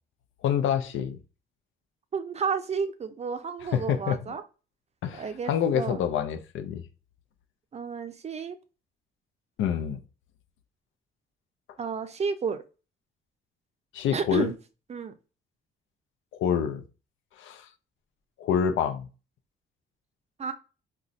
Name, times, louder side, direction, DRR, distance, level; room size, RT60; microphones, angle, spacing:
voice 1, 0.4-1.2 3.7-4.4 5.0-6.8 9.6-10.0 13.9-14.5 16.3-16.8 17.4-17.7 18.4-19.1, left 8 dB, 75° left, 0.5 m, -27 dB
voice 2, 2.1-4.4 5.2-6.0 7.7-8.6 11.8-12.6 14.1-14.5 14.9-15.1 20.4-20.5, right 5 dB, 35° right, 0.5 m, -31 dB
2.4 x 2.2 x 3.8 m
cardioid pair, 90°, 20 cm